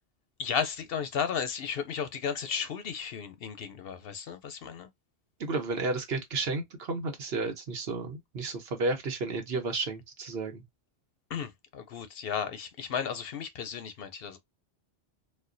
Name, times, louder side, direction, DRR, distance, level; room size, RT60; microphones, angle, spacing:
voice 1, 0.4-4.9 11.3-14.4, left 7 dB, 65° left, 0.7 m, -34 dB
voice 2, 5.4-10.6, right 3 dB, 65° right, 1.1 m, -32 dB
4.2 x 2.1 x 2.5 m
omnidirectional pair, 1.2 m